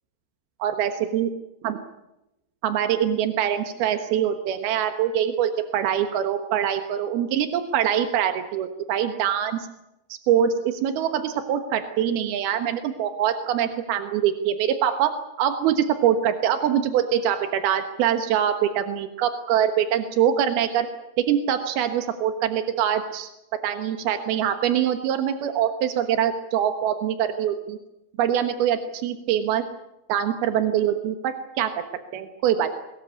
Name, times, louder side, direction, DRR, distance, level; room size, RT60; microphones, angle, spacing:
voice 1, 0.6-1.3 1.6-1.8 2.6-9.7 10.1-15.1 15.4-20.9 21.2-23.3 23.6-27.8 28.2-29.6 30.1-31.7 32.1-32.8, right 9 dB, 90° right, 7 dB, 3.3 m, -24 dB
22.5 x 21.0 x 8.5 m, 0.92 s
omnidirectional pair, 4.3 m